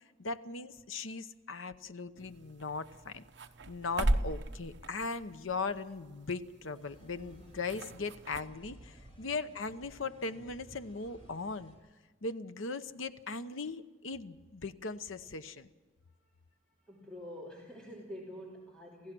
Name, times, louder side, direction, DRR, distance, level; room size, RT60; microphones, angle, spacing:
voice 1, 0.2-3.2 3.7-11.7 12.2-15.7, left 4 dB, 85° left, 11 dB, 0.9 m, -39 dB
sound 1, 2.2-8.4, right 1 dB, 65° right, 1.0 m, -38 dB
sound 2, 6.7-11.7, right 1 dB, 30° left, 6.2 m, -56 dB
voice 2, 16.8-19.1, equal, 5° left, -4 dB, 2.8 m, -47 dB
28.0 x 16.0 x 6.2 m, 1.3 s
head